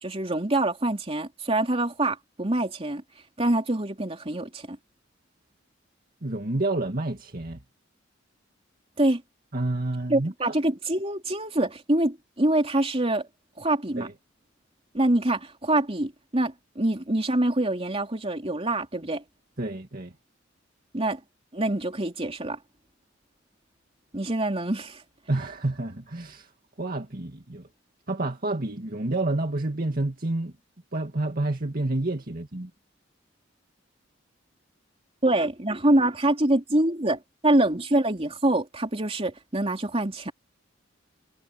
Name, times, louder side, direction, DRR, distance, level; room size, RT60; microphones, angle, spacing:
voice 1, 0.0-3.0 3.4-4.8 9.0-9.2 10.1-13.3 13.6-14.1 14.9-19.2 20.9-21.2 21.5-22.6 24.1-25.0 35.2-40.3, right 1 dB, 30° right, 3.4 m, -25 dB
voice 2, 6.2-7.6 9.5-10.5 14.0-14.1 19.6-20.1 25.3-26.5 26.8-27.7 28.1-30.5 30.9-32.7, right 2 dB, 45° right, 2.1 m, -29 dB
head